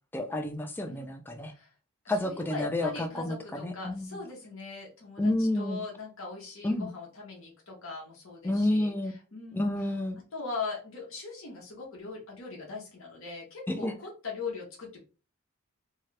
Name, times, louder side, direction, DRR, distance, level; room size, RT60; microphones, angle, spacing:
voice 1, 0.1-1.5 2.1-4.2 5.2-5.8 6.6-6.9 8.4-9.1 9.5-10.2 13.7-13.9, left 1 dB, 10° left, 0.4 m, -30 dB
voice 2, 1.4-1.7 2.0-9.9 10.3-15.0, left 4 dB, 60° left, 0.9 m, -40 dB
2.8 x 2.4 x 3.2 m
head